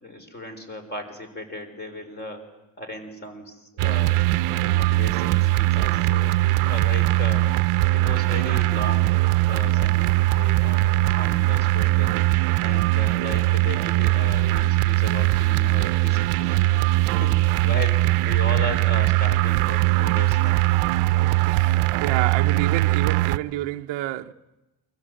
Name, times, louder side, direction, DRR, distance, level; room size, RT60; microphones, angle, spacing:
voice 1, 0.0-2.5 2.8-4.2 4.7-7.5 7.9-12.1 12.6-16.7 17.0-20.6, left 1 dB, 20° left, 4.3 m, -36 dB
sound 1, 3.8-23.4, right 17 dB, 85° right, 1.0 m, -21 dB
voice 2, 21.1-24.3, right 16 dB, 60° right, 0.9 m, -29 dB
29.0 x 24.5 x 7.8 m
cardioid pair, 170°, 50 cm